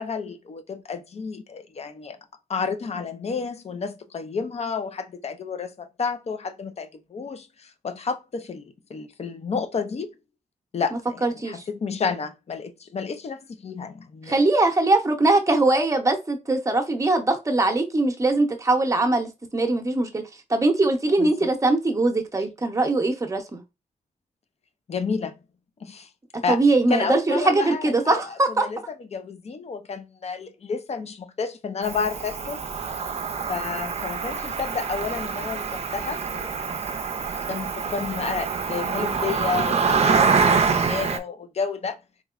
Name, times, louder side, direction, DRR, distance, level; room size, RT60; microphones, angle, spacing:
voice 1, 0.0-2.2 2.5-10.1 10.7-14.4 21.2-21.5 24.9-25.4 25.8-26.1 26.4-26.6 26.9-32.6 33.5-36.6 37.5-42.0, left 5 dB, 50° left, 0.5 m, -31 dB
voice 2, 11.2-11.6 14.3-20.2 20.5-23.6 26.5-28.7, right 2 dB, 25° right, 0.8 m, -21 dB
Cricket, 31.8-41.2, right 5 dB, 50° right, 0.5 m, -25 dB
3.7 x 3.0 x 2.4 m
wide cardioid pair, 100°, 14 cm